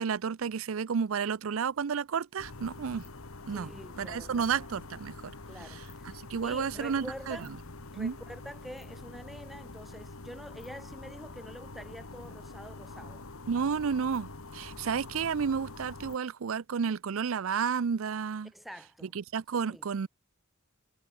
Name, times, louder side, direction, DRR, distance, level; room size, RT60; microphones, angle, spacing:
voice 1, 0.0-3.1 3.5-3.7 4.0-5.3 5.7-5.8 6.3-7.4 8.0-8.2 13.5-18.5 19.1-20.1, right 6 dB, 70° right, 0.5 m, -31 dB
sound 1, 2.4-16.2, left 2 dB, 90° left, 1.8 m, -46 dB
voice 2, 3.5-4.5 5.5-7.5 7.9-13.3 18.5-19.1 19.7-19.9, equal, ahead, 0.9 m, -46 dB
head